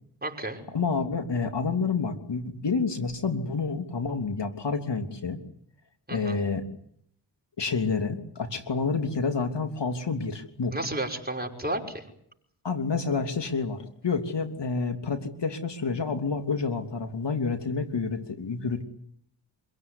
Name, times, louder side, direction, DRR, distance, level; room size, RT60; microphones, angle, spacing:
voice 1, 0.2-0.6 6.1-6.4 10.7-12.0, right 1 dB, 20° right, 2 dB, 5.7 m, -32 dB
voice 2, 0.7-5.4 6.1-6.6 7.6-10.7 12.6-18.8, left 4 dB, 60° left, 6 dB, 3.1 m, -29 dB
26.5 x 16.5 x 9.9 m, 0.72 s
cardioid pair, 45°, 49 cm